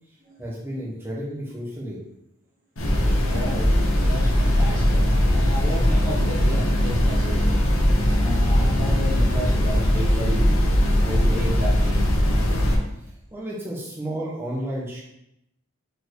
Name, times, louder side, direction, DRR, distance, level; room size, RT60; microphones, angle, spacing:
voice 1, 0.4-2.0 13.0-15.0, right 1 dB, 10° right, -6 dB, 1.2 m, -32 dB
sound 1, 2.8-12.8, equal, 75° left, 1.1 m, -20 dB
voice 2, 3.3-7.7 8.1-10.5 11.0-12.3 13.3-13.4, equal, 40° right, -3 dB, 1.3 m, -32 dB
4.6 x 4.4 x 4.7 m, 0.83 s
head